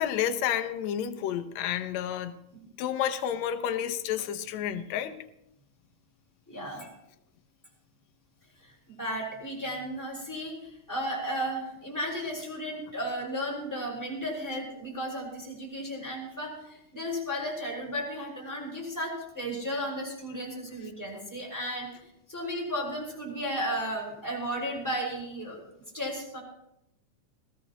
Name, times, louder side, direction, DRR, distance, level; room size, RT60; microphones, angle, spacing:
voice 1, 0.0-2.3 2.8-5.2, left 10 dB, 70° left, 1.9 m, -30 dB
voice 2, 6.5-6.9 8.6-25.6 25.9-26.4, equal, 5° left, 5.3 m, -34 dB
20.5 x 16.0 x 3.1 m
omnidirectional pair, 3.8 m